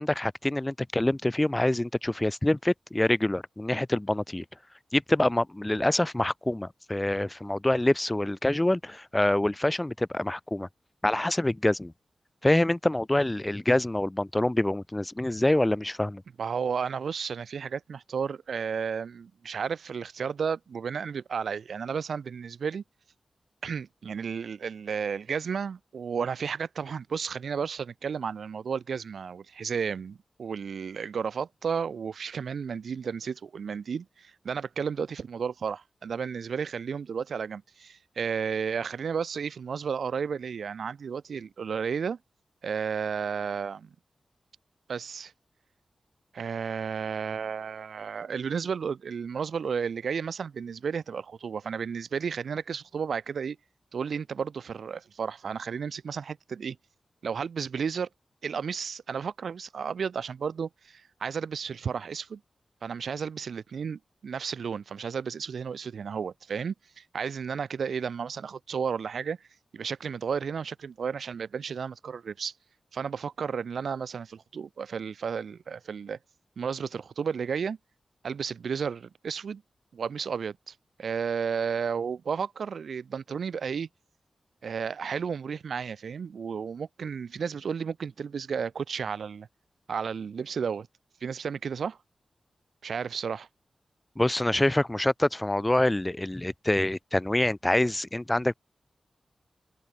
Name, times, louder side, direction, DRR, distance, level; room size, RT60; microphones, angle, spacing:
voice 1, 0.0-4.4 4.9-10.7 11.0-11.9 12.4-16.2 94.2-98.5, left 1 dB, 15° left, 2.4 m, -26 dB
voice 2, 16.4-22.8 23.6-42.2 42.6-43.9 44.9-45.3 46.3-53.6 53.9-56.8 57.2-58.1 58.4-62.4 62.8-69.4 69.7-72.5 72.9-76.2 76.6-77.8 78.2-79.6 79.9-83.9 84.6-89.5 89.9-90.9 91.2-92.0 92.8-93.5, right 6 dB, 85° right, 2.6 m, -33 dB
wide cardioid pair, 130°, 0 cm